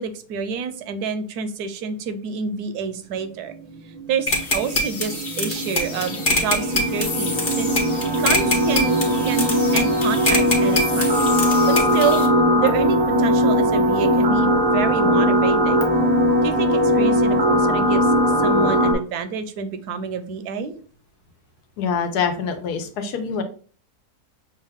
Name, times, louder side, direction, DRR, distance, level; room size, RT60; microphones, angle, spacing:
voice 1, 0.0-3.6 4.1-11.2 11.4-12.2 12.6-15.9 16.4-20.7, right 6 dB, 80° right, 10 dB, 1.1 m, -28 dB
sound 1, 4.0-18.9, equal, 25° right, 0.6 m, -20 dB
sound 2, 4.3-12.3, left 2 dB, 40° left, 1.0 m, -25 dB
voice 2, 21.8-23.4, left 6 dB, 80° left, 6 dB, 1.3 m, -25 dB
6.3 x 2.2 x 3.5 m, 0.42 s
omnidirectional pair, 1.7 m